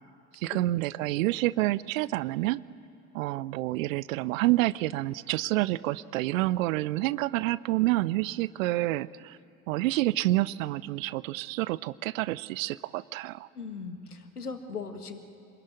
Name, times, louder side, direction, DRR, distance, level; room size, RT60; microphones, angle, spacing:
voice 1, 0.3-2.6 3.1-9.4 9.7-13.5, right 17 dB, 60° right, 19 dB, 0.7 m, -28 dB
voice 2, 13.6-15.2, left 5 dB, 85° left, 7 dB, 1.7 m, -39 dB
26.5 x 21.0 x 9.5 m, 2.7 s
figure-of-eight pair, 65°, 44 cm